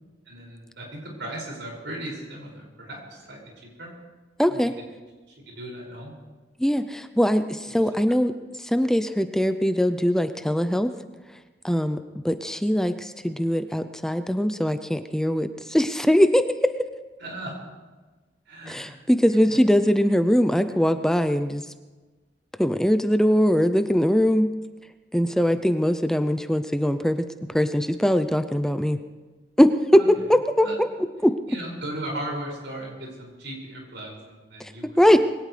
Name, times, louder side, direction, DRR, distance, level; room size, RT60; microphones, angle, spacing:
voice 1, 0.3-3.5 3.8-3.9 4.5-4.6 5.3-6.1 7.7-7.8 17.2-17.6 18.5-19.6 25.2-25.5 29.9-30.1 30.6-30.8 31.5-35.0, right 1 dB, 80° right, -2 dB, 6.0 m, -37 dB
voice 2, 4.4-4.7 6.6-8.3 8.6-10.9 11.6-12.0 12.2-16.7 18.7-21.7 22.6-24.5 25.1-29.0 29.6-30.9 31.2-31.3 34.6-35.2, equal, 5° left, 9 dB, 0.5 m, -21 dB
22.0 x 17.5 x 3.3 m, 1.3 s
head